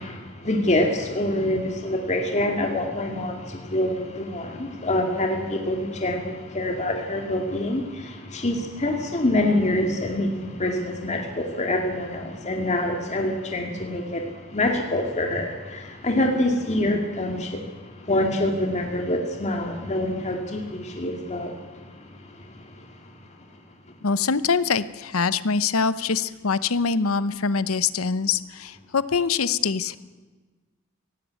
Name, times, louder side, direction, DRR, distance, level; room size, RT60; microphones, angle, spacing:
voice 1, 0.0-21.6, left 1 dB, 35° left, 2 dB, 2.1 m, -26 dB
voice 2, 24.0-30.0, left 5 dB, 80° left, 15 dB, 0.8 m, -24 dB
17.0 x 16.0 x 9.5 m, 1.3 s
head